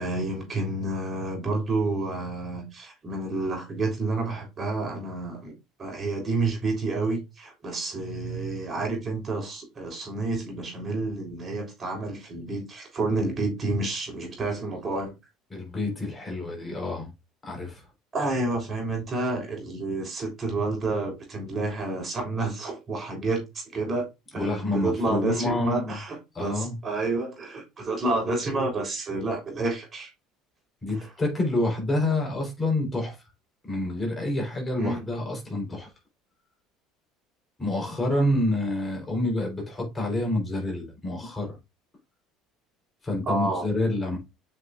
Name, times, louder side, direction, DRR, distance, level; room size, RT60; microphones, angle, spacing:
voice 1, 0.0-5.5 5.8-15.1 18.1-24.1 24.3-30.1 31.0-31.1 34.8-35.0 43.3-43.7, right 2 dB, 35° right, 3.9 m, -29 dB
voice 2, 15.5-17.1 17.4-17.8 24.3-26.0 26.3-26.7 30.8-33.2 33.6-35.9 37.6-41.6 43.0-44.2, left 1 dB, 20° left, 3.9 m, -28 dB
7.5 x 5.8 x 2.5 m
hypercardioid pair, 70°, 0 cm